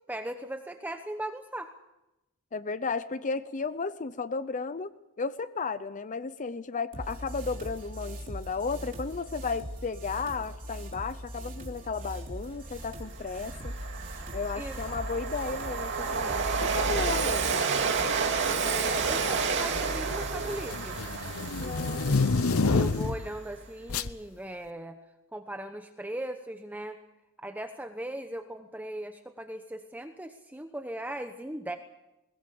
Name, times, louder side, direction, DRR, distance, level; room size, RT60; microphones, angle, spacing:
voice 1, 0.1-1.7 14.6-14.8 18.6-21.0 22.7-25.0 25.3-27.0 27.4-31.8, right 1 dB, 10° right, 6 dB, 1.0 m, -38 dB
voice 2, 2.5-4.9 5.2-13.7 14.3-17.6 21.6-22.3, left 4 dB, 35° left, 14 dB, 0.6 m, -34 dB
sound 1, 6.9-17.5, equal, 40° right, 3.4 m, -41 dB
Train, 12.6-12.7 13.1-23.5, right 5 dB, 55° right, 2.5 m, -30 dB
sound 2, 17.0-17.3 18.2-18.7 19.0-23.3 23.9-24.1, left 3 dB, 70° left, 0.8 m, -28 dB
21.0 x 20.5 x 6.9 m, 0.94 s
head